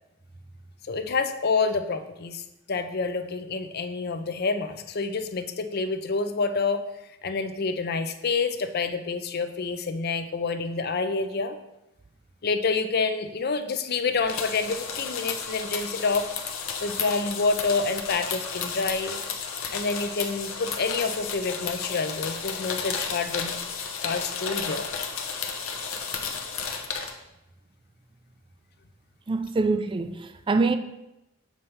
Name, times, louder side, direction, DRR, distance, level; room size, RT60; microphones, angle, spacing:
voice 1, 0.8-2.4 2.7-6.8 7.2-11.6 12.4-16.3 16.8-19.2 19.7-23.6 24.0-24.9, left 4 dB, 50° left, 0.5 m, -28 dB
sound 1, 14.2-27.1, left 6 dB, 80° left, 0.9 m, -33 dB
voice 2, 29.3-30.8, right 3 dB, 25° right, 0.3 m, -25 dB
7.3 x 3.3 x 5.5 m
head